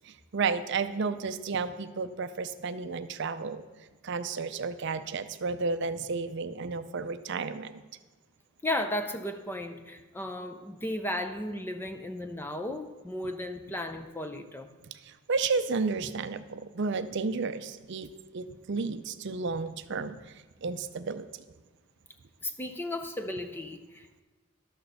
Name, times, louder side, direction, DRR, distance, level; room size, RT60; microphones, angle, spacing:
voice 1, 0.1-3.6 4.0-7.7 15.1-20.2 20.6-21.3, right 4 dB, 55° right, 11 dB, 0.5 m, -32 dB
voice 2, 8.6-14.7 22.4-24.2, left 1 dB, 10° left, 7 dB, 0.6 m, -35 dB
12.0 x 6.5 x 6.8 m, 1.2 s
head